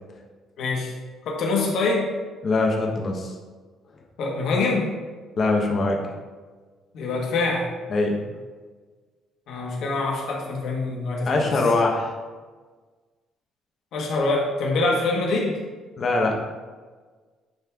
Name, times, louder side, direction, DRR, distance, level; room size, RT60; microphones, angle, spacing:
voice 1, 0.6-0.9 1.3-2.1 4.2-4.9 6.9-7.7 9.5-11.5 13.9-15.6, left 3 dB, 55° left, -1 dB, 1.8 m, -24 dB
voice 2, 2.4-3.3 5.4-6.0 7.9-8.2 11.3-12.1 16.0-16.3, left 3 dB, 30° left, 1 dB, 1.1 m, -22 dB
10.5 x 4.3 x 3.7 m, 1.4 s
cardioid pair, 180°, 0 cm